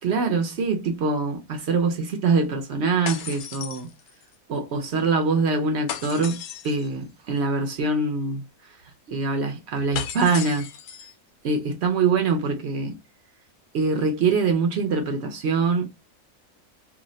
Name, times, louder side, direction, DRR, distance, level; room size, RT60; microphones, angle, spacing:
voice 1, 0.0-3.9 4.5-10.7 11.4-13.0 13.7-15.9, right 4 dB, 65° right, 0.7 m, -24 dB
sound 1, 3.1-4.3 5.9-6.9 9.9-11.1, left 9 dB, 75° left, 1.0 m, -35 dB
2.7 x 2.0 x 3.7 m
omnidirectional pair, 1.6 m